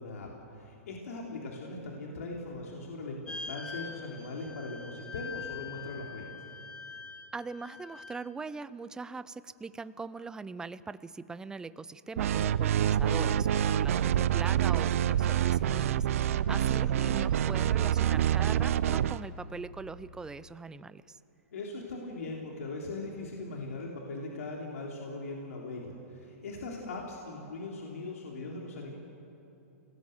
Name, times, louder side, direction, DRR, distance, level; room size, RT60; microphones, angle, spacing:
voice 1, 0.0-6.4 16.4-16.7 21.5-28.9, left 2 dB, 75° left, -1 dB, 3.4 m, -40 dB
sound 1, 3.3-8.3, left 5 dB, 10° left, 1.8 m, -44 dB
voice 2, 7.3-21.2, right 4 dB, 10° right, 15 dB, 0.6 m, -41 dB
sound 2, 12.2-19.2, right 10 dB, 65° right, 0.6 m, -27 dB
26.5 x 18.5 x 7.9 m, 2.8 s
hypercardioid pair, 130°, 8 cm